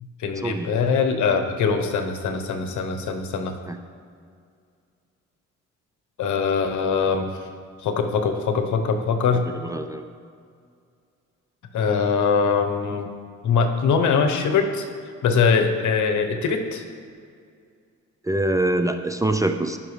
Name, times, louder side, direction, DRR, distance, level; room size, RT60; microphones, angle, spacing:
voice 1, 0.2-3.5 6.2-7.3 7.8-9.4 11.7-13.1 13.4-14.8 15.2-16.8, left 5 dB, 75° left, 5 dB, 1.0 m, -22 dB
voice 2, 9.6-10.0 18.3-19.8, right 1 dB, 10° right, 7 dB, 0.4 m, -24 dB
15.5 x 5.9 x 3.3 m, 2.2 s
cardioid pair, 90°, 30 cm